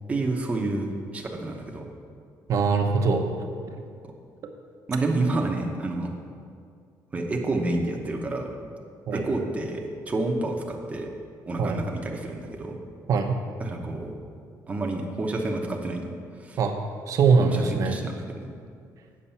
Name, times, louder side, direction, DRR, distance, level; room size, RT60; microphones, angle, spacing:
voice 1, 0.1-1.9 4.9-6.1 7.1-8.5 9.1-11.1 11.5-12.8 13.6-14.1 14.7-16.6 17.4-18.5, right 2 dB, 20° right, 1 dB, 0.9 m, -29 dB
voice 2, 2.5-3.2 9.1-9.2 11.6-11.8 13.1-13.4 16.6-16.7 17.1-18.0, right 5 dB, 50° right, 4 dB, 0.9 m, -22 dB
8.7 x 6.7 x 5.6 m, 2.3 s
cardioid pair, 160°, 7 cm